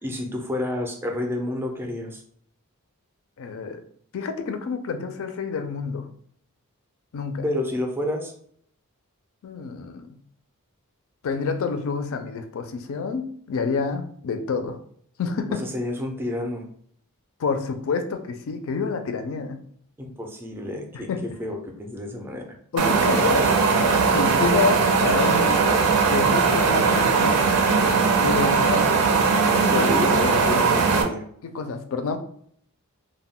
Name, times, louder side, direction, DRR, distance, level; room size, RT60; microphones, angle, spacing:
voice 1, 0.0-2.2 7.4-8.3 15.6-16.7 20.0-21.1 21.4-22.5 29.7-31.2, left 1 dB, 10° right, 2 dB, 0.4 m, -29 dB
voice 2, 3.4-3.8 4.1-6.1 7.1-7.5 9.4-10.2 11.2-14.8 15.2-15.7 17.4-19.6 20.9-21.2 22.7-23.5 24.0-25.8 26.1-27.5 28.2-28.9 29.7-30.4 31.4-32.2, left 5 dB, 65° left, 8 dB, 0.4 m, -28 dB
sound 1, 22.8-31.0, right 4 dB, 75° right, 0.5 m, -19 dB
2.2 x 2.0 x 3.5 m, 0.62 s
head